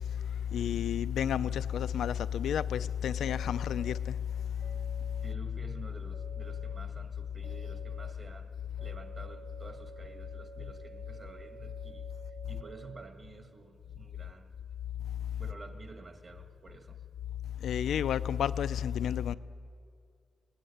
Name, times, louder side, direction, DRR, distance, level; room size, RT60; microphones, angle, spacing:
voice 1, 0.5-4.1 17.6-19.3, left 9 dB, 75° left, 0.5 m, -31 dB
sound 1, 3.2-4.0 4.6-5.4 6.1-6.8 7.4-8.1 8.8-13.1, right 7 dB, 70° right, 1.2 m, -52 dB
voice 2, 5.2-8.5 8.8-12.1 12.5-14.5 15.4-17.0, right 3 dB, 30° right, 1.7 m, -50 dB
21.0 x 18.5 x 10.0 m
wide cardioid pair, 175°, 0 cm